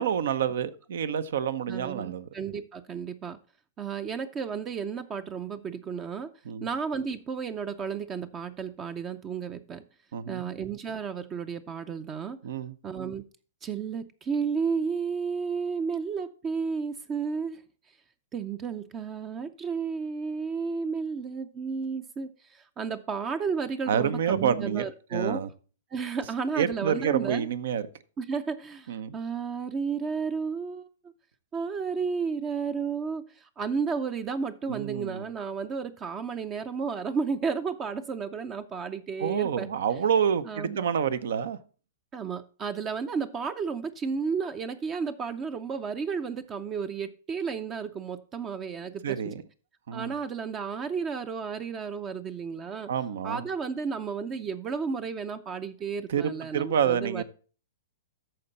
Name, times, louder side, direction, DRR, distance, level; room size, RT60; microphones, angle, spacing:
voice 1, 0.0-2.3 6.4-6.7 10.1-10.5 12.4-12.7 23.9-25.5 26.6-27.8 28.9-29.1 34.7-35.2 39.2-41.6 49.0-49.4 49.9-50.1 52.9-53.4 56.1-57.2, right 8 dB, 70° right, 0.8 m, -28 dB
voice 2, 1.7-3.4 3.8-6.3 6.6-9.8 10.3-12.4 12.8-13.2 13.6-17.6 18.3-25.4 25.9-27.5 28.2-31.1 31.5-39.7 40.4-40.8 42.1-49.3 49.9-52.9 53.2-57.2, right 5 dB, 25° right, 0.6 m, -32 dB
13.5 x 4.5 x 4.1 m
hypercardioid pair, 125°, 0 cm